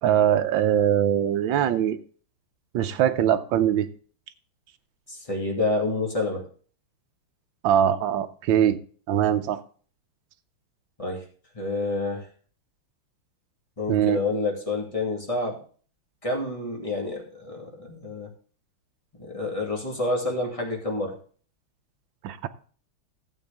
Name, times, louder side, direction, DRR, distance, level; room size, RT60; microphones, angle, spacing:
voice 1, 0.0-2.0 2.7-3.9 7.6-8.8 9.1-9.6 13.9-14.2 22.2-22.5, right 10 dB, 70° right, 10 dB, 1.4 m, -22 dB
voice 2, 5.1-6.4 11.0-11.2 11.5-12.3 13.8-15.6 16.2-18.3 19.1-21.2, left 2 dB, 15° left, 0 dB, 2.3 m, -28 dB
13.0 x 7.9 x 3.5 m, 0.42 s
omnidirectional pair, 2.4 m